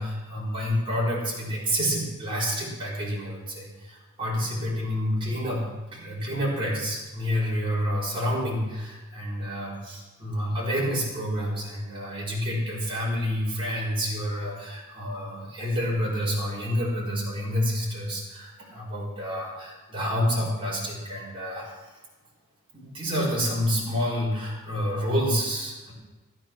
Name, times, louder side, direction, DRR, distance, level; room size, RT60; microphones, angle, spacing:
voice 1, 0.0-22.0 22.7-25.9, equal, 25° right, -6 dB, 4.3 m, -28 dB
17.5 x 10.0 x 6.1 m, 1.2 s
head